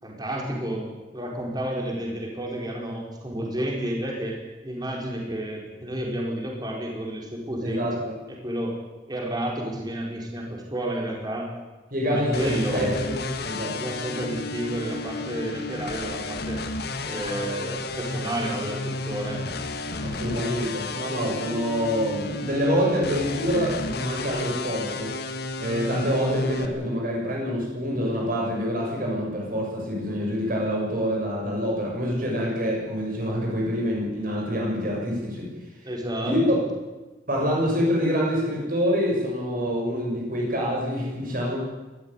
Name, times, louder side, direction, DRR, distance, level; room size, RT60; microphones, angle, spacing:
voice 1, 0.0-7.9 8.4-8.8 9.1-11.5 12.0-12.9 13.7-16.6 17.0-19.4 35.8-36.6, right 1 dB, 25° right, 0 dB, 4.6 m, -31 dB
voice 2, 7.6-8.1 11.9-13.8 20.0-25.1 25.6-35.5 36.2-36.4 37.3-41.6, equal, 50° right, -2 dB, 6.7 m, -26 dB
sound 1, 12.3-26.7, left 2 dB, 60° left, 1.8 m, -32 dB
20.0 x 14.0 x 9.8 m, 1.1 s
head